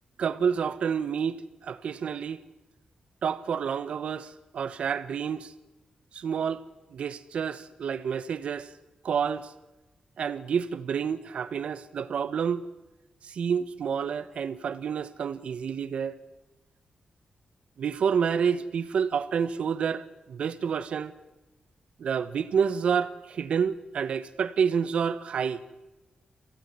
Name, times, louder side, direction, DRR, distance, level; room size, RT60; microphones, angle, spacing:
voice 1, 0.2-2.4 3.2-5.5 6.1-6.6 6.9-8.7 9.0-9.5 10.2-12.6 13.2-16.2 17.8-21.1 22.0-25.6, right 7 dB, 70° right, 1.4 m, -29 dB
28.0 x 17.5 x 9.7 m
wide cardioid pair, 170°, 2 cm